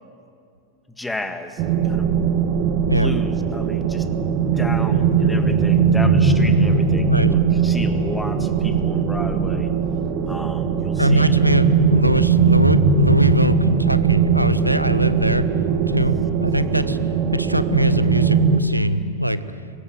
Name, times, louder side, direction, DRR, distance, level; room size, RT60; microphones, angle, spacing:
voice 1, 1.0-2.2 2.9-4.1 4.4-9.7 10.2-11.4, left 1 dB, 5° left, 8 dB, 1.7 m, -33 dB
sound 1, 1.6-18.6, right 6 dB, 40° right, 1.8 m, -19 dB
voice 2, 11.0-15.4 15.8-17.0 17.3-19.4, equal, 90° right, 14 dB, 0.8 m, -22 dB
24.0 x 20.5 x 8.0 m, 2.5 s
figure-of-eight pair, 90°, 0 cm